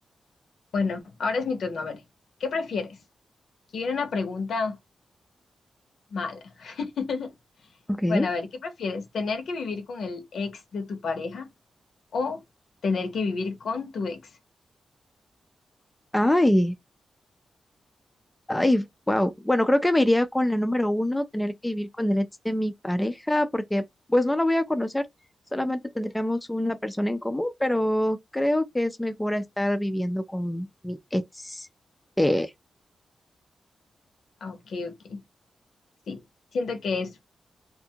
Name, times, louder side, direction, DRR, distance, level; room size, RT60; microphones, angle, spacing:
voice 1, 0.7-2.0 2.4-3.0 3.7-4.8 6.1-7.3 8.1-11.5 12.1-12.4 12.8-14.3 34.4-35.2 36.1-36.2 36.5-37.1, left 4 dB, 75° left, 0.7 m, -30 dB
voice 2, 7.9-8.3 16.1-16.7 18.5-25.1 25.5-31.7 32.2-32.5, left 1 dB, 10° left, 0.3 m, -25 dB
2.5 x 2.2 x 2.8 m
wide cardioid pair, 135°, 0 cm